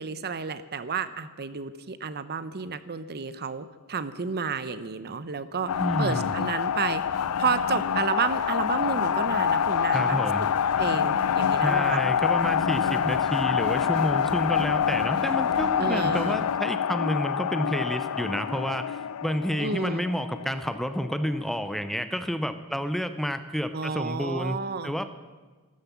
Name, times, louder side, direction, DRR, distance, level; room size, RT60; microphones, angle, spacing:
voice 1, 0.0-10.2 10.8-12.0 15.8-16.4 19.6-20.1 23.7-24.9, right 5 dB, 45° right, 13 dB, 0.8 m, -31 dB
sound 1, 5.7-21.5, left 8 dB, 75° left, 0.4 m, -26 dB
voice 2, 5.8-6.4 9.9-10.5 11.6-24.6 24.8-25.1, equal, ahead, 10 dB, 0.7 m, -29 dB
14.0 x 13.0 x 7.1 m, 1.3 s
head